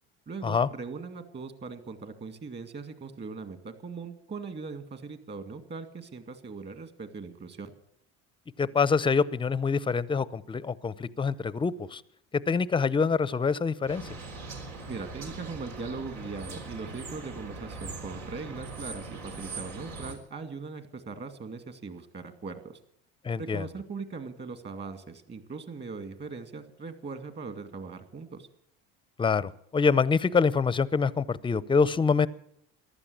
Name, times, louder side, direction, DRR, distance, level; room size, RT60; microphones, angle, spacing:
voice 1, 0.3-7.7 14.9-22.8 23.4-28.5, right 4 dB, 35° right, 9 dB, 2.2 m, -40 dB
voice 2, 8.6-12.0 12.3-14.2 23.2-23.7 29.2-32.3, left 5 dB, 15° left, 19 dB, 0.6 m, -25 dB
sound 1, 13.9-20.1, right 3 dB, 85° right, 3.8 m, -41 dB
14.5 x 11.5 x 8.6 m, 0.71 s
supercardioid pair, 100°, 31 cm